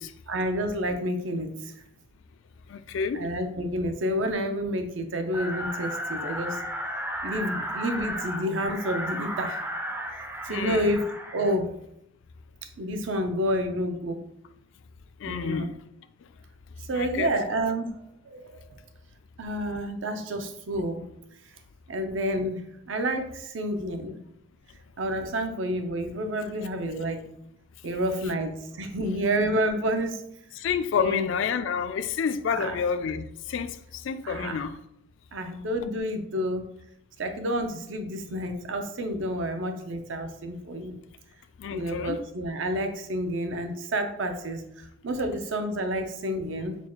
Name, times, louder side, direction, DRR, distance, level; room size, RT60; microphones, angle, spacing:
voice 1, 0.3-1.7 3.1-6.6 7.2-9.6 10.1-11.0 11.3-11.7 12.8-14.2 15.2-15.7 16.9-17.9 18.2-18.6 19.4-21.1 21.9-24.2 25.0-27.2 27.8-30.2 31.0-31.3 32.5-32.8 34.2-34.6 35.3-36.7 37.2-40.9 41.7-46.8, equal, 80° right, 0.6 m, -29 dB
voice 2, 2.7-3.2 10.5-10.9 15.2-15.7 16.9-17.3 30.5-34.7 41.6-42.2, left 6 dB, 75° left, 0.3 m, -29 dB
sound 1, 5.3-11.5, equal, 10° right, 0.3 m, -34 dB
4.3 x 2.3 x 4.4 m
head